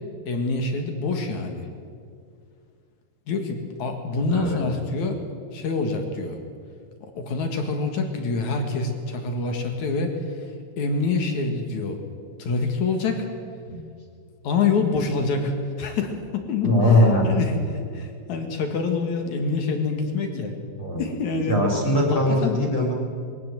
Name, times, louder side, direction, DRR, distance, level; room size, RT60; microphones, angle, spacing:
voice 1, 0.3-1.7 3.3-5.2 5.5-6.4 7.0-10.5 10.8-12.0 12.4-13.3 14.4-20.6 21.0-21.6 22.1-22.6, left 4 dB, 55° left, 5 dB, 2.2 m, -26 dB
voice 2, 4.3-4.6 13.7-13.8 16.6-17.3 20.8-21.0 21.5-22.9, left 1 dB, 30° left, -1 dB, 4.0 m, -20 dB
22.0 x 17.0 x 7.7 m, 2.2 s
omnidirectional pair, 5.6 m